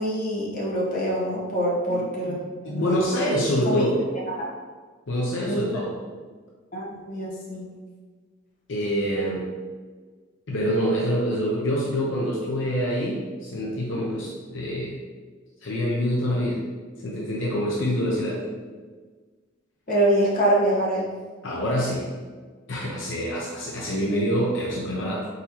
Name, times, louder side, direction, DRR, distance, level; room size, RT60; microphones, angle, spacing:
voice 1, 0.0-2.4 2.7-3.0 3.6-3.8 4.4-4.5 5.5-5.6 6.7-7.6 19.9-21.1, right 1 dB, 40° left, -5 dB, 1.0 m, -24 dB
voice 2, 2.3-4.0 5.1-6.0 8.7-9.5 10.5-15.0 15.6-16.6 17.0-18.4 21.4-22.1 22.7-25.3, equal, 65° left, -4 dB, 0.7 m, -26 dB
4.2 x 4.0 x 2.9 m, 1.5 s
head